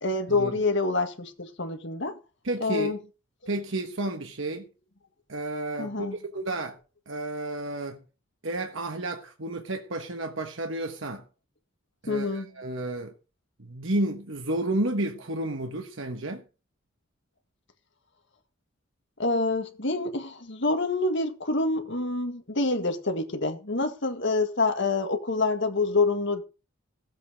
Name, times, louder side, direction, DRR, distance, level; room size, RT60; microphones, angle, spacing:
voice 1, 0.0-2.2 2.6-3.0 5.8-6.1 12.1-12.5 19.2-26.4, left 3 dB, 55° left, 1.8 m, -27 dB
voice 2, 2.4-2.9 3.5-4.7 5.3-6.8 7.1-8.0 8.4-11.3 12.0-13.1 13.6-16.4, right 2 dB, 60° right, 1.3 m, -31 dB
16.0 x 8.0 x 5.1 m
head